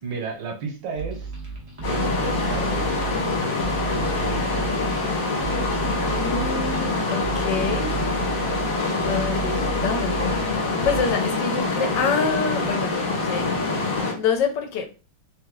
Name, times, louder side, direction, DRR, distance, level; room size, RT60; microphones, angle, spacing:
voice 1, 0.0-1.3 1.8-3.2, right 4 dB, 70° right, 1.5 m, -33 dB
sound 1, 1.0-11.0, right 4 dB, 50° right, 0.4 m, -32 dB
sound 2, 1.8-14.1, left 3 dB, 50° left, 1.5 m, -25 dB
voice 2, 6.1-7.9 9.1-13.6 14.1-14.9, left 5 dB, 70° left, 1.3 m, -27 dB
3.2 x 2.7 x 3.8 m
omnidirectional pair, 2.1 m